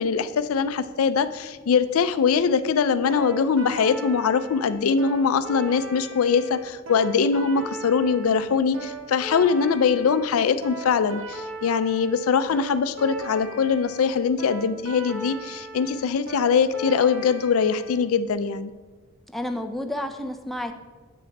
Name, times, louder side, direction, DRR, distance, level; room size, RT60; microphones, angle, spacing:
voice 1, 0.0-18.7, left 6 dB, 80° left, 13 dB, 0.4 m, -22 dB
sound 1, 3.1-17.9, right 2 dB, 65° right, 1.0 m, -38 dB
voice 2, 19.3-20.8, left 1 dB, ahead, 5 dB, 0.4 m, -31 dB
7.6 x 6.4 x 4.1 m, 1.3 s
head